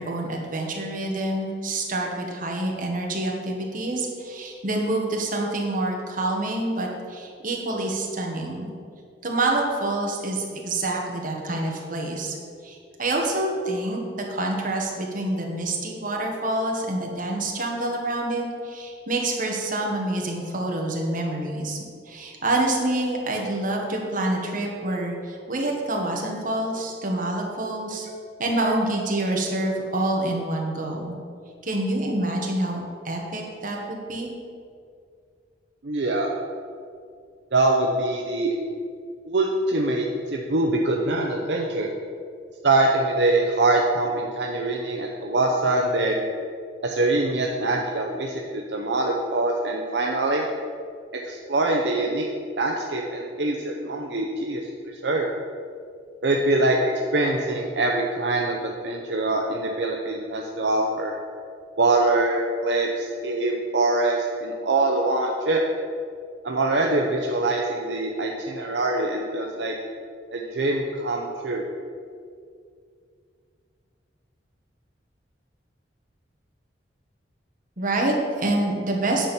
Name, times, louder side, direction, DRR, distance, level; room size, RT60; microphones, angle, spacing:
voice 1, 0.0-8.6 9.2-12.4 12.6-21.8 22.0-28.1 28.4-31.2 31.6-32.8 33.0-34.3 77.8-79.3, right 2 dB, 50° right, 0 dB, 1.5 m, -27 dB
voice 2, 35.8-36.3 37.5-38.5 39.3-41.9 42.6-46.2 46.8-50.5 51.2-52.2 52.6-55.3 56.2-61.1 61.8-65.6 66.4-69.7 70.3-71.6, right 2 dB, 70° right, 0 dB, 0.7 m, -24 dB
9.9 x 4.4 x 7.1 m, 2.3 s
head